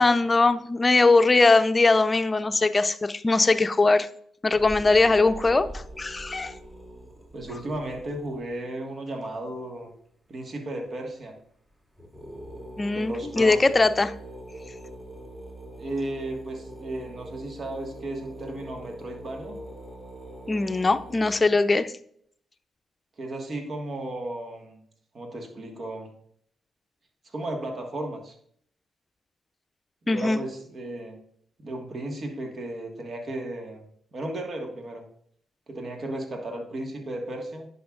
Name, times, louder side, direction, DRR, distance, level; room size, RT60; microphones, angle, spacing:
voice 1, 0.0-4.1 4.4-6.5 12.8-14.1 20.5-21.9 30.1-30.4, left 3 dB, 30° left, 11 dB, 0.5 m, -21 dB
sound 1, 4.5-8.5 11.2-11.3 11.7-11.8 12.0-21.4, right 1 dB, 25° right, 2.6 m, -43 dB
voice 2, 7.3-9.9 10.3-11.3 12.9-13.7 15.8-19.6 23.2-24.8 25.1-26.1 27.2-28.3 30.0-31.1 31.6-35.0 35.7-37.7, right 1 dB, 50° right, 3 dB, 1.6 m, -34 dB
10.0 x 5.7 x 2.5 m, 0.65 s
hypercardioid pair, 45°, 0 cm